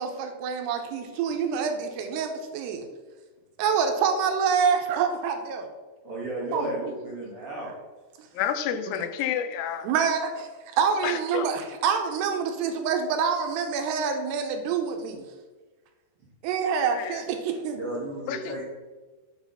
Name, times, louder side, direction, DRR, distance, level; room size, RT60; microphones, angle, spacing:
voice 1, 0.0-2.9 3.6-5.7 6.5-6.9 9.8-15.2 16.4-17.8, right 6 dB, 85° right, 5 dB, 2.8 m, -26 dB
voice 2, 6.0-7.7 17.7-18.6, right 1 dB, 55° right, -6 dB, 1.7 m, -33 dB
voice 3, 8.3-9.9 11.0-11.5 16.9-17.2 18.3-18.6, left 9 dB, 85° left, 8 dB, 2.5 m, -29 dB
7.2 x 4.0 x 5.6 m, 1.3 s
omnidirectional pair, 4.8 m